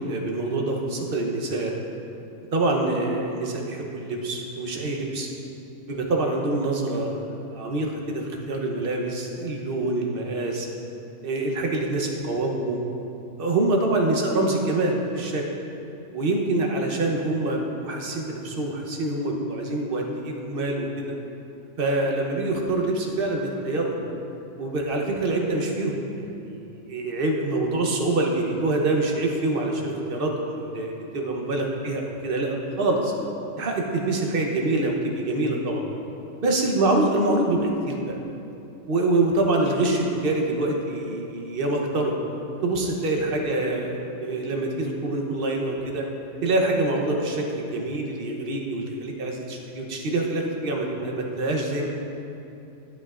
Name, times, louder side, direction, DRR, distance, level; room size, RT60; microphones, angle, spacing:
voice 1, 0.0-1.7 2.5-5.3 5.9-10.7 11.2-12.8 13.4-15.4 16.1-21.1 21.8-24.0 24.6-33.1 33.6-35.8 36.4-38.2 38.9-42.1 42.6-46.0 46.4-51.9, right 2 dB, 45° right, 1 dB, 1.0 m, -25 dB
10.5 x 9.3 x 2.5 m, 2.8 s
omnidirectional pair, 1.5 m